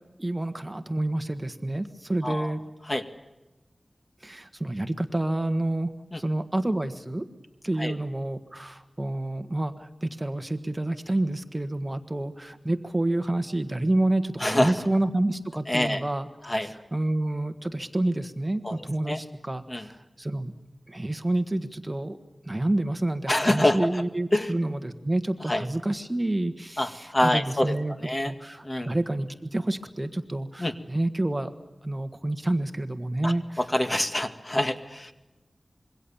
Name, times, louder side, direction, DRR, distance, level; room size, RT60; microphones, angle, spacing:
voice 1, 0.2-2.6 4.2-5.9 6.2-7.2 7.6-16.3 16.9-20.5 20.9-22.2 22.5-28.0 28.3-31.5 31.8-33.6, right 1 dB, 20° right, 8 dB, 1.5 m, -28 dB
voice 2, 2.2-2.5 2.9-3.1 6.1-6.2 7.8-7.9 14.4-14.9 15.7-16.0 16.4-16.7 18.6-19.2 19.7-19.9 23.3-24.0 24.3-24.5 25.5-25.7 26.8-28.3 28.6-28.9 30.6-30.7 33.2-35.1, left 1 dB, 30° left, 8 dB, 1.9 m, -26 dB
26.5 x 23.0 x 7.2 m, 1.1 s
wide cardioid pair, 80°, 0 cm